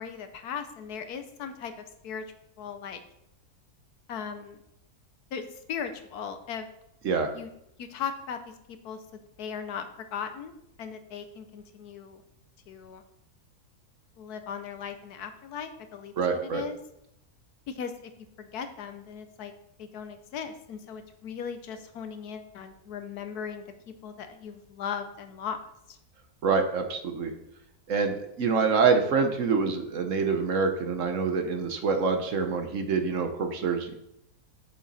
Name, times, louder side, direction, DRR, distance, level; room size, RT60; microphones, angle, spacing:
voice 1, 0.0-1.7 2.0-2.2 2.6-3.0 4.1-4.6 5.3-6.7 7.3-7.5 7.8-10.5 10.8-12.2 12.7-13.0 14.2-16.1 16.4-16.8 17.7-18.1 18.4-19.5 19.8-23.6 24.0-25.6 25.9-26.0, left 7 dB, 80° left, 8 dB, 1.3 m, -38 dB
voice 2, 16.2-16.6 26.4-27.3 27.9-33.9, right 5 dB, 60° right, 6 dB, 1.2 m, -26 dB
7.4 x 7.1 x 4.2 m, 0.79 s
omnidirectional pair, 1.7 m